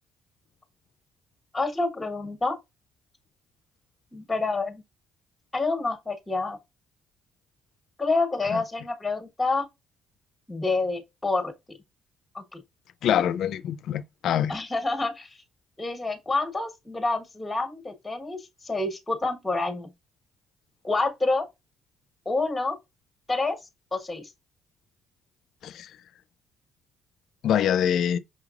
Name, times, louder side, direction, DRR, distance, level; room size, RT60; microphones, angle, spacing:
voice 1, 1.5-2.6 4.1-4.8 5.5-6.6 8.0-9.7 10.5-11.5 12.3-12.6 14.5-15.4 15.8-19.9 20.8-21.4 22.2-22.8 23.3-23.6 23.9-24.3, left 3 dB, 15° left, 1.3 m, -28 dB
voice 2, 13.0-14.6 25.6-25.9 27.4-28.2, left 9 dB, 70° left, 0.3 m, -25 dB
5.6 x 3.1 x 2.4 m
supercardioid pair, 65°, 0 cm